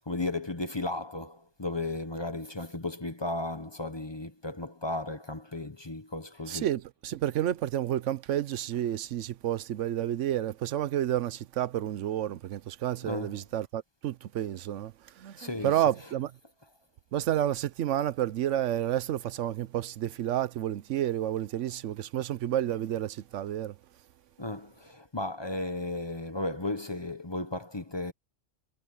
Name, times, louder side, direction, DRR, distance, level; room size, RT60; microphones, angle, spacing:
voice 1, 0.1-6.7 13.0-13.4 15.4-15.8 24.4-28.1, left 2 dB, 25° left, 1.0 m, -35 dB
voice 2, 6.5-16.3 17.1-23.8, right 11 dB, 85° right, 1.0 m, -30 dB
omnidirectional pair, 1.2 m